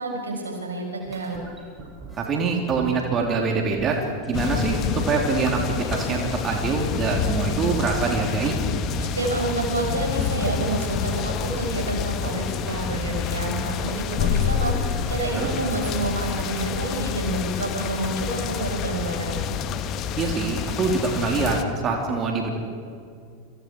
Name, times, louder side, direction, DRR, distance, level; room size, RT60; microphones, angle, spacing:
voice 1, 0.0-1.4 9.0-14.8 15.1-19.5, right 2 dB, 80° right, 1 dB, 5.6 m, -29 dB
sound 1, 1.0-5.4 5.8-6.8 7.1-16.2, right 3 dB, 15° right, 6.1 m, -38 dB
voice 2, 2.2-4.0 4.3-8.6 15.3-15.5 20.2-21.6 21.8-22.5, right 4 dB, 30° right, 1 dB, 3.5 m, -24 dB
sound 2, 4.3-21.6, left 8 dB, 40° left, 1.6 m, -28 dB
29.0 x 25.0 x 4.8 m, 2.3 s
figure-of-eight pair, 85°, 0 cm